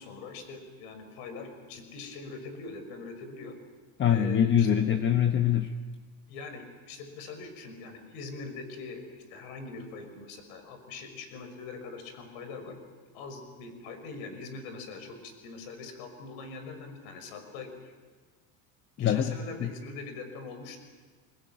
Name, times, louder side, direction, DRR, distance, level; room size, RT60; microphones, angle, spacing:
voice 1, 0.0-3.6 4.1-4.8 6.3-12.8 13.1-17.9 19.0-20.8, left 4 dB, 65° left, 8 dB, 5.9 m, -42 dB
voice 2, 4.0-5.7 19.0-19.7, left 9 dB, 25° left, 8 dB, 1.1 m, -24 dB
24.5 x 20.5 x 9.3 m, 1.4 s
supercardioid pair, 120°, 45 cm